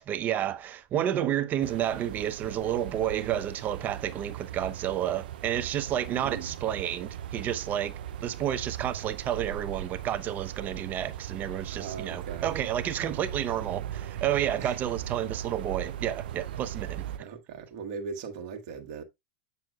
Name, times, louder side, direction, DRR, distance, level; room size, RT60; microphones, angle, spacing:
voice 1, 0.0-7.9 8.2-17.3, right 10 dB, 35° right, 0.7 m, -30 dB
sound 1, 1.6-17.2, right 11 dB, 75° right, 0.5 m, -39 dB
voice 2, 6.2-6.5 11.7-12.5 14.6-14.8 17.2-19.0, right 5 dB, 55° right, 1.3 m, -39 dB
7.4 x 6.9 x 2.3 m
hypercardioid pair, 115°, 5 cm